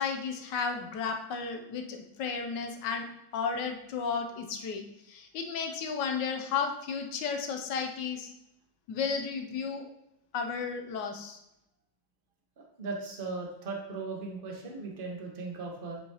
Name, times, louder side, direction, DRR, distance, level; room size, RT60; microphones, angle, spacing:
voice 1, 0.0-3.1 3.3-8.3 8.9-9.9 10.3-11.4, left 5 dB, 70° left, 4 dB, 1.2 m, -33 dB
voice 2, 12.8-16.0, right 3 dB, 35° right, 0 dB, 1.1 m, -37 dB
7.9 x 4.7 x 2.9 m, 0.83 s
omnidirectional pair, 2.1 m